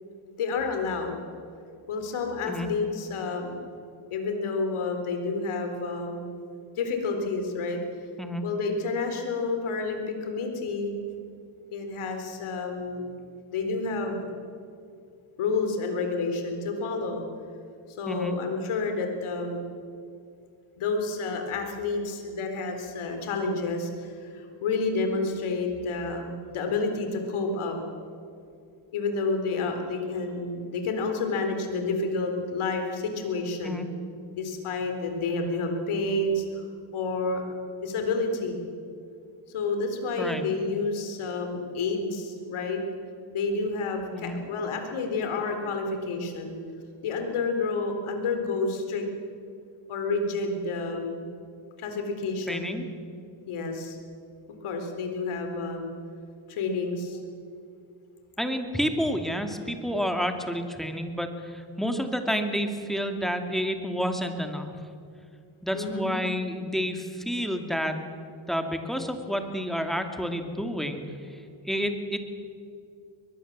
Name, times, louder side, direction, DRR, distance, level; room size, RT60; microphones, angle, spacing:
voice 1, 0.4-1.2 1.9-3.6 4.1-6.3 6.8-7.8 8.4-10.9 11.7-13.1 13.5-14.3 15.4-17.2 17.9-19.7 20.8-27.8 28.9-33.8 34.3-36.6 36.9-37.4 37.8-38.6 39.5-42.8 43.3-46.6 47.0-49.0 49.9-51.3 51.8-52.7 53.5-54.0 54.6-55.9 56.5-57.2 65.7-66.1, left 3 dB, 85° left, 5 dB, 4.1 m, -29 dB
voice 2, 52.5-52.9 58.4-64.7 65.6-68.0 68.5-72.2, equal, ahead, 5 dB, 2.5 m, -30 dB
22.5 x 21.0 x 7.5 m, 2.4 s
cardioid pair, 100°, 48 cm